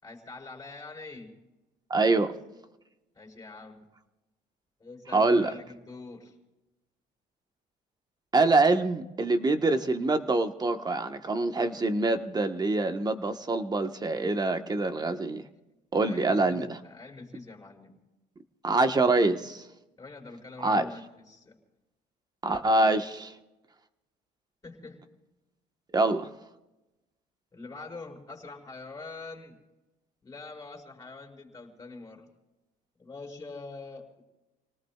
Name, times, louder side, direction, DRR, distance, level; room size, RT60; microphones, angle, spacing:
voice 1, 0.0-1.4 3.1-3.8 4.8-6.3 16.0-18.0 20.0-21.5 24.6-25.0 27.5-29.6 30.2-32.3 33.0-34.2, left 3 dB, 20° left, -1 dB, 5.3 m, -44 dB
voice 2, 1.9-2.3 5.1-5.5 8.3-15.4 15.9-16.8 18.6-19.6 20.6-20.8 22.4-23.3 25.9-26.3, right 2 dB, 25° right, 7 dB, 1.4 m, -25 dB
30.0 x 19.0 x 2.4 m, 1.0 s
cardioid pair, 110°, 17 cm